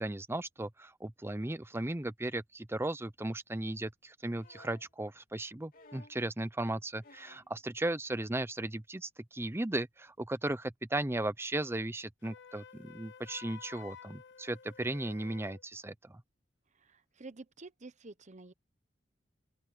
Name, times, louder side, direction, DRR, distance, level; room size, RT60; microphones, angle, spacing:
voice 1, 0.0-16.2, right 1 dB, 15° right, 0.7 m, -36 dB
sound 1, 4.4-4.9 5.7-6.3 7.0-7.5 8.7-8.8, left 3 dB, 50° left, 3.0 m, -57 dB
Wind instrument woodwind instrument, 12.2-15.6, left 7 dB, 65° left, 0.8 m, -52 dB
voice 2, 16.7-18.5, right 3 dB, 40° right, 1.1 m, -50 dB
open air
head